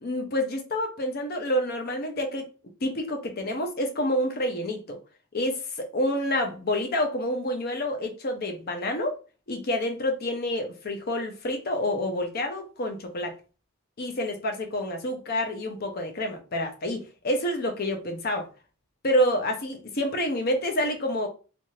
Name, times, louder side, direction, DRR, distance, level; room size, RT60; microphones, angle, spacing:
voice 1, 0.0-2.5 2.8-5.0 5.3-9.1 9.5-13.3 14.0-18.5 19.0-21.3, left 1 dB, 45° left, 0.6 m, -28 dB
2.6 x 2.6 x 3.1 m
head